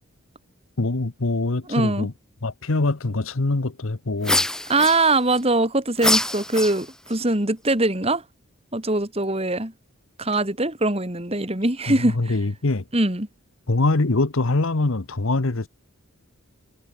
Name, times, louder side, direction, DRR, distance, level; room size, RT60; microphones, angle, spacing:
voice 1, 0.8-2.1 2.4-4.5 11.9-12.8 13.7-15.7, left 2 dB, 70° left, 1.1 m, -23 dB
voice 2, 1.7-2.1 4.7-8.2 8.7-9.7 10.2-12.2 12.9-13.3, right 2 dB, 30° right, 2.5 m, -22 dB
sound 1, 4.2-5.4 6.0-7.1, left 1 dB, 5° left, 0.6 m, -24 dB
head